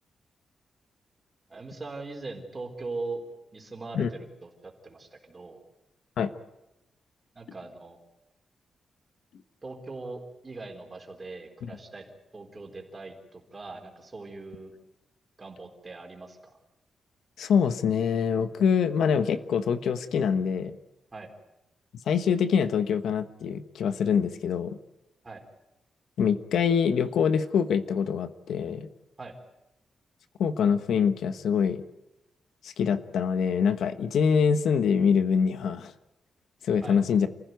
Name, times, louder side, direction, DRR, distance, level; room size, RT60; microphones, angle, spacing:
voice 1, 1.5-3.2 3.5-5.6 7.3-8.0 9.6-12.0 12.3-14.7 15.4-16.4 21.1-21.3 25.2-25.4 29.2-29.3 36.8-37.0, right 3 dB, 25° right, 3 dB, 3.9 m, -40 dB
voice 2, 17.4-20.8 22.1-24.8 26.2-28.9 30.4-31.8 32.6-35.9 36.6-37.3, left 6 dB, 85° left, 11 dB, 1.3 m, -25 dB
28.5 x 15.0 x 9.5 m, 0.92 s
wide cardioid pair, 150°, 0 cm